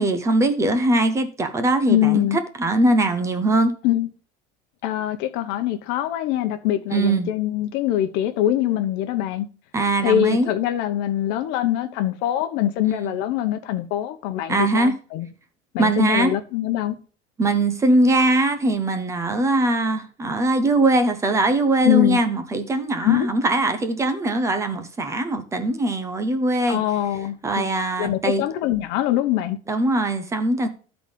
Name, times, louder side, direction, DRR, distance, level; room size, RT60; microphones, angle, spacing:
voice 1, 0.0-2.3 2.6-3.7 6.9-7.3 9.7-10.5 12.9-13.2 14.5-15.0 15.8-16.3 17.4-26.8 27.4-28.4 29.7-30.7, right 2 dB, 15° right, 0.7 m, -21 dB
voice 2, 1.9-2.4 3.8-4.1 4.8-9.5 10.0-15.3 15.7-17.0 21.8-22.2 23.0-23.3 26.7-27.7 28.0-29.6, left 12 dB, 65° left, 0.9 m, -23 dB
12.0 x 4.1 x 5.0 m
cardioid pair, 170°, 19 cm